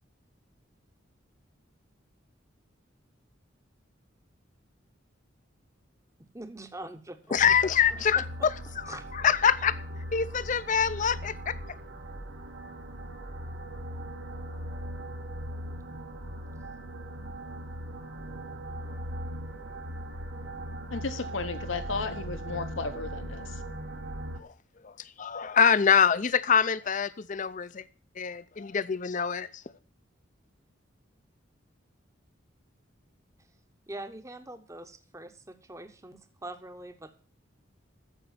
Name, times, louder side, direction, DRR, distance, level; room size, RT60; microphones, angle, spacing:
voice 1, 6.2-7.6 7.9-8.5 8.9-9.1 33.9-37.2, right 1 dB, 15° right, 9 dB, 0.9 m, -43 dB
voice 2, 7.3-8.2 9.2-9.8 10.1-11.5 24.8-24.9 25.2-27.8 28.2-29.5, left 7 dB, 40° left, 16 dB, 0.5 m, -24 dB
sound 1, 7.3-24.4, equal, 75° right, 1.5 m, -39 dB
voice 3, 20.9-23.5, left 4 dB, 85° left, 9 dB, 1.2 m, -34 dB
14.0 x 5.3 x 7.5 m, 0.42 s
head